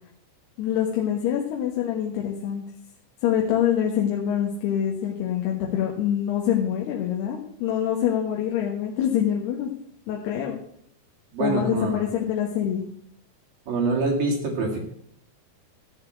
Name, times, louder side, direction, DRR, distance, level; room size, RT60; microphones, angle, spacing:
voice 1, 0.6-2.6 3.2-9.7 10.1-10.6 11.4-12.8, left 9 dB, 70° left, -1 dB, 3.2 m, -25 dB
voice 2, 11.3-12.0 13.7-14.8, right 3 dB, 60° right, 0 dB, 3.7 m, -25 dB
14.0 x 6.7 x 8.0 m, 0.67 s
omnidirectional pair, 5.2 m